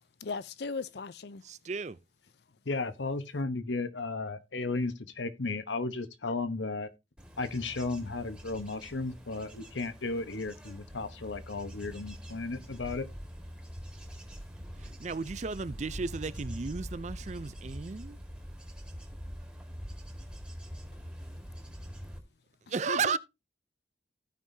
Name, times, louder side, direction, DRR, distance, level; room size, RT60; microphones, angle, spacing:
voice 1, 0.2-1.4 22.9-23.2, left 4 dB, 60° left, 0.5 m, -37 dB
voice 2, 1.4-2.0 14.8-18.2 22.7-23.2, right 5 dB, 40° right, 0.4 m, -34 dB
voice 3, 2.6-6.9 7.4-13.1, left 3 dB, 80° left, 1.1 m, -34 dB
Bird / Insect / Wind, 7.2-22.2, equal, 5° right, 1.7 m, -44 dB
16.0 x 5.6 x 2.7 m
head